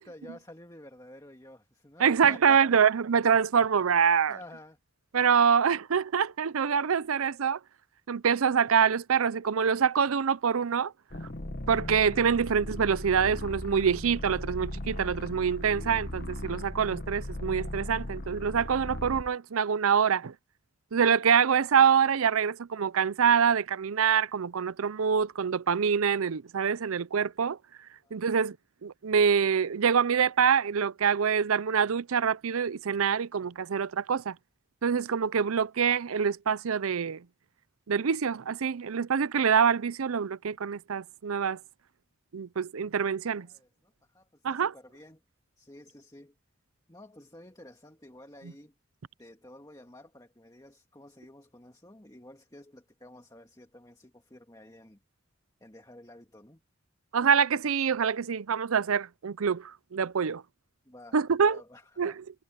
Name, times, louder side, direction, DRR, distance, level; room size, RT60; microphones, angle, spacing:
voice 1, 0.0-2.8 4.3-4.8 28.0-28.2 43.4-45.2 45.6-46.3 46.9-48.7 49.2-55.0 55.6-56.6 60.9-61.2 61.5-62.2, left 1 dB, 15° left, 1.9 m, -51 dB
voice 2, 2.0-4.4 5.1-7.6 8.1-10.9 11.7-20.3 20.9-27.6 28.1-28.6 28.8-34.3 34.8-37.2 37.9-41.6 42.3-43.5 44.4-44.7 57.1-60.4 61.1-61.6 62.0-62.1, right 7 dB, 90° right, 0.6 m, -25 dB
sound 1, 11.1-19.3, left 1 dB, 50° left, 1.5 m, -38 dB
head